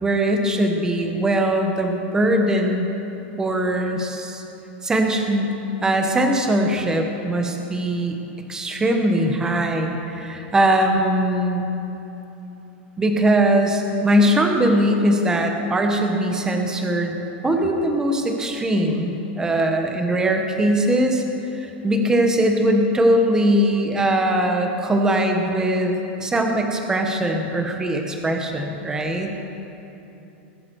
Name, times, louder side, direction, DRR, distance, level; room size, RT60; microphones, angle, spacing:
voice 1, 0.0-2.9 3.4-4.4 4.8-5.5 5.8-8.2 8.5-11.6 13.0-17.2 17.4-21.2 21.5-29.3, right 1 dB, 10° right, 3 dB, 1.0 m, -21 dB
21.0 x 8.8 x 4.6 m, 3.0 s
supercardioid pair, 155°, 6 cm